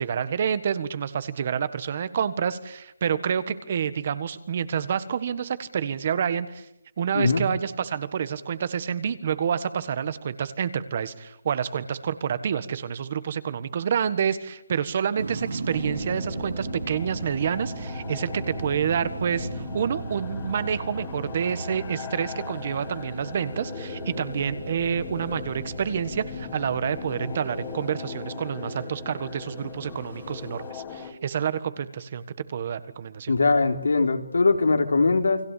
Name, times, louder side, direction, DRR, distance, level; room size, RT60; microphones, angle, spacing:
voice 1, 0.0-6.7 7.0-32.2 32.5-33.3, right 7 dB, 30° right, 14 dB, 1.5 m, -28 dB
sound 1, 15.2-30.7, right 3 dB, 70° right, 7.1 m, -38 dB
sound 2, 15.7-31.1, left 6 dB, 15° left, 2.6 m, -39 dB
voice 2, 33.3-35.4, left 3 dB, 80° left, 5 dB, 4.0 m, -21 dB
29.5 x 22.0 x 8.4 m, 0.82 s
hypercardioid pair, 175°, 0 cm